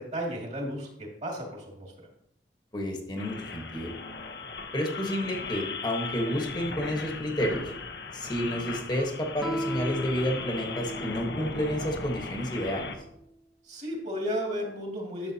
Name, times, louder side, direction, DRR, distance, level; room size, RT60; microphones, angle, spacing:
voice 1, 0.0-1.9 13.6-15.3, equal, 40° right, -1 dB, 2.3 m, -34 dB
voice 2, 2.7-3.9 4.7-7.6 8.1-12.9, equal, 25° left, 1 dB, 1.3 m, -30 dB
sound 1, 3.2-13.0, left 4 dB, 65° left, 0.9 m, -38 dB
Guitar, 9.4-11.8, right 1 dB, ahead, 0.9 m, -37 dB
11.0 x 7.3 x 2.8 m, 0.78 s
head